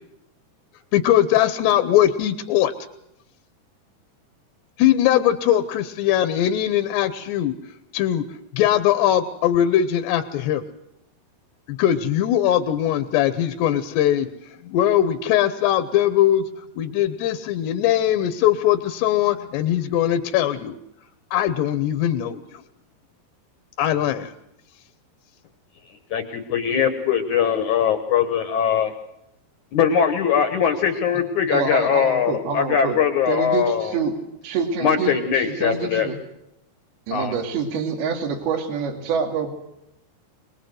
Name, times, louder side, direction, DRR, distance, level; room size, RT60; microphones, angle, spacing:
voice 1, 0.9-2.7 4.8-7.5 7.9-8.2 8.5-10.6 11.7-14.3 14.6-16.4 16.8-20.7 21.3-22.6 23.8-24.3, left 11 dB, 80° left, 10 dB, 3.1 m, -20 dB
voice 2, 26.1-28.9 29.7-33.9 34.8-36.1 37.1-37.3, left 7 dB, 65° left, 8 dB, 2.0 m, -21 dB
voice 3, 31.5-33.0 33.3-34.1 34.4-36.2 37.1-39.5, right 5 dB, 65° right, 5 dB, 4.2 m, -26 dB
25.0 x 20.0 x 7.8 m, 0.82 s
omnidirectional pair, 4.9 m